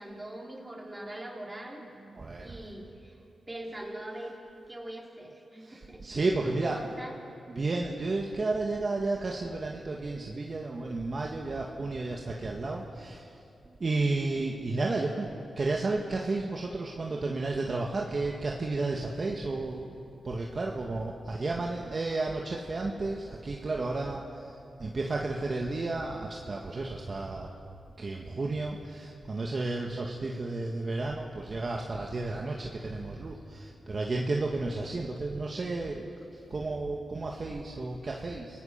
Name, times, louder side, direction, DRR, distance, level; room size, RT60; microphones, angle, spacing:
voice 1, 0.0-1.8 2.4-3.2 3.5-6.0 6.4-7.2, right 1 dB, 20° right, -2 dB, 5.2 m, -42 dB
voice 2, 2.1-2.5 5.6-5.7 6.0-6.8 7.6-13.3 13.7-27.5 28.0-36.1 36.5-38.6, right 3 dB, 45° right, 0 dB, 1.9 m, -32 dB
28.5 x 18.5 x 5.9 m, 2.6 s
cardioid pair, 60°, 0 cm